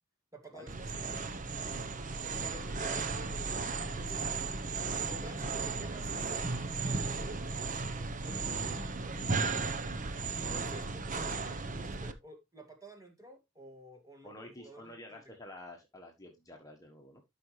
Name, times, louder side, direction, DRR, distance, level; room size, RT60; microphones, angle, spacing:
voice 1, 0.3-1.3 2.2-3.5 3.9-4.3 4.9-6.4 6.8-7.8 8.2-8.9 10.5-15.4, right 1 dB, 15° right, 2.1 m, -51 dB
sound 1, 0.7-12.1, right 4 dB, 35° right, 0.8 m, -35 dB
voice 2, 14.2-17.2, left 1 dB, 15° left, 1.4 m, -50 dB
12.5 x 5.0 x 3.2 m
head